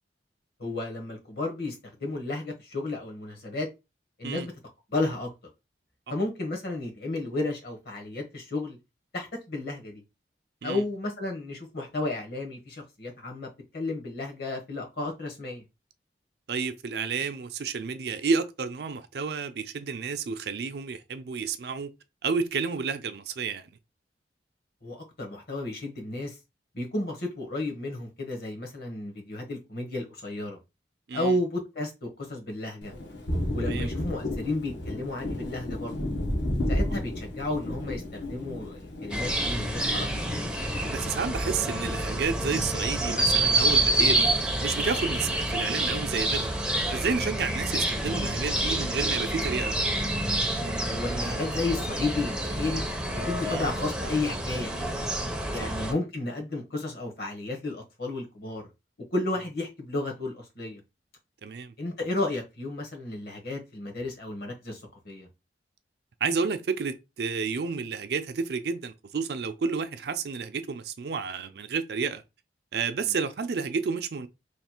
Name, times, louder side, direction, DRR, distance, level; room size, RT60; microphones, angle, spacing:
voice 1, 0.6-1.7 2.0-3.7 4.2-4.5 4.9-5.3 6.1-8.8 9.1-10.0 10.6-15.6 24.8-26.4 26.7-30.6 31.1-32.9 33.5-35.9 36.7-40.1 50.9-52.8 53.2-55.0 55.5-58.6 59.1-60.8 61.8-65.3, left 2 dB, 60° left, 1.2 m, -32 dB
voice 2, 16.5-21.9 22.2-23.7 31.1-31.3 33.6-33.9 40.9-44.3 44.6-46.5 46.9-49.8 53.5-53.7 55.6-55.7 61.4-61.7 66.2-72.2 72.7-74.3, right 5 dB, 60° right, 0.4 m, -30 dB
Thunder, 32.8-42.6 42.9-44.0, left 1 dB, 80° left, 1.1 m, -33 dB
sound 1, 39.1-55.9, right 1 dB, 5° right, 0.5 m, -28 dB
3.2 x 2.3 x 4.3 m
head